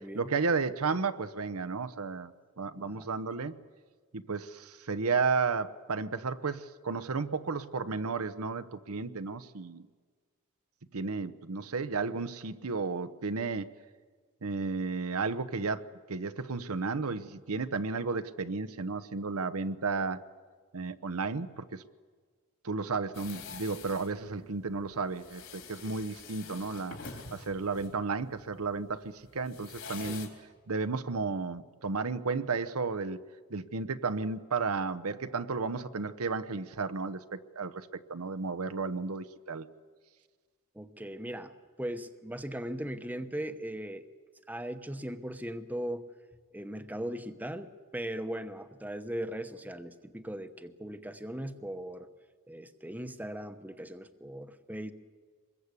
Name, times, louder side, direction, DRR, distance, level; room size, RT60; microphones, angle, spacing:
voice 1, 0.0-3.5 4.1-9.9 10.9-13.7 14.4-20.2 20.7-21.8 22.6-30.3 30.7-33.2 33.5-39.7, right 4 dB, 80° right, 12 dB, 0.9 m, -33 dB
voice 2, 2.8-3.1 30.1-30.2 40.7-41.5 41.8-44.1 44.5-46.0 46.5-52.1 52.5-54.9, right 1 dB, 5° right, 9 dB, 0.9 m, -38 dB
sound 1, 23.1-30.3, left 5 dB, 60° left, 3.7 m, -46 dB
25.0 x 21.5 x 8.3 m, 1.5 s
head